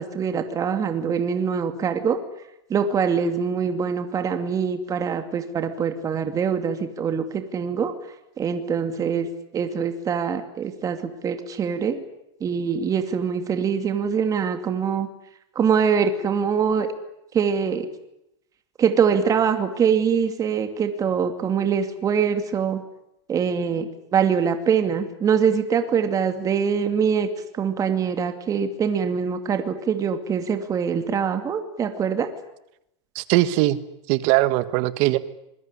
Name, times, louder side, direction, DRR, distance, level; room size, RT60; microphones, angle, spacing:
voice 1, 0.0-2.2 2.7-7.9 8.4-9.3 9.5-12.0 12.4-15.1 15.6-16.9 17.3-17.9 18.8-22.8 23.3-27.3 27.5-32.3, right 7 dB, 20° right, 8 dB, 2.6 m, -23 dB
voice 2, 33.1-33.8 34.1-35.2, right 17 dB, 50° right, 14 dB, 1.6 m, -20 dB
26.5 x 21.0 x 9.9 m, 0.84 s
supercardioid pair, 140°, 15 cm